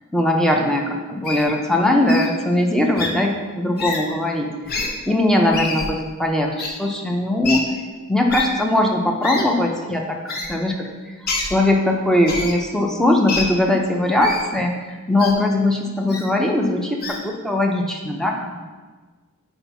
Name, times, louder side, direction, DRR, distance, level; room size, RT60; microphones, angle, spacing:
voice 1, 0.1-4.8 5.1-7.6 8.1-18.6, left 1 dB, 5° left, 1 dB, 0.6 m, -20 dB
Wild animals, 1.2-1.4 2.1-2.3 3.0-3.1 3.8-4.0 4.7-4.9 5.5-5.9 6.6-6.7 7.4-7.6 8.3-8.4 9.2-9.4 10.3-10.5 11.3-11.5 12.3-12.5 13.3-13.4 14.2-14.4 15.2-15.3 16.1-16.2 17.0-17.2, left 3 dB, 50° left, 0.9 m, -26 dB
4.4 x 4.4 x 5.5 m, 1.4 s
head